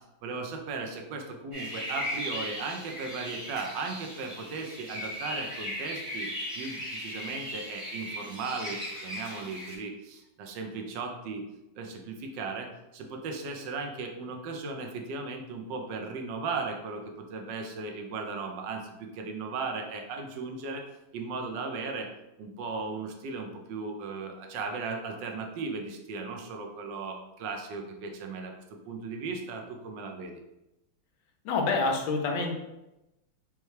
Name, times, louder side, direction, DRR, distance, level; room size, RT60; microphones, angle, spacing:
voice 1, 0.2-6.3 6.5-11.4 11.8-20.8 21.1-22.1 22.4-28.5 28.8-30.4, right 4 dB, 70° right, 2 dB, 1.1 m, -36 dB
sound 1, 1.5-9.8, equal, 25° right, 0.7 m, -38 dB
voice 2, 31.4-32.6, left 3 dB, 75° left, 3 dB, 1.3 m, -27 dB
5.4 x 2.2 x 3.2 m, 0.94 s
omnidirectional pair, 2.3 m